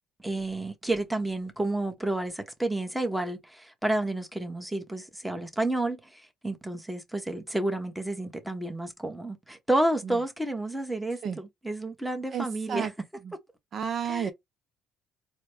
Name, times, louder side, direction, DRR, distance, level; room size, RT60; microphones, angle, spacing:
voice 1, 0.2-12.9 14.1-14.3, right 1 dB, 5° right, 0.9 m, -30 dB
voice 2, 12.3-12.9 13.2-13.4 13.7-14.3, right 7 dB, 50° right, 0.5 m, -32 dB
4.1 x 2.0 x 3.2 m
cardioid pair, 90°, 0 cm